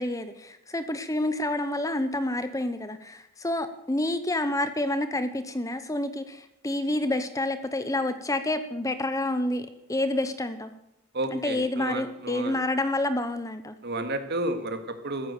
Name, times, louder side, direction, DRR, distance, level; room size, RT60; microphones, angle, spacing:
voice 1, 0.0-10.7 11.3-13.7, left 1 dB, 15° left, 11 dB, 0.8 m, -28 dB
voice 2, 11.1-12.6 13.8-15.3, right 1 dB, 50° right, 8 dB, 2.0 m, -32 dB
14.5 x 14.0 x 6.7 m, 0.83 s
head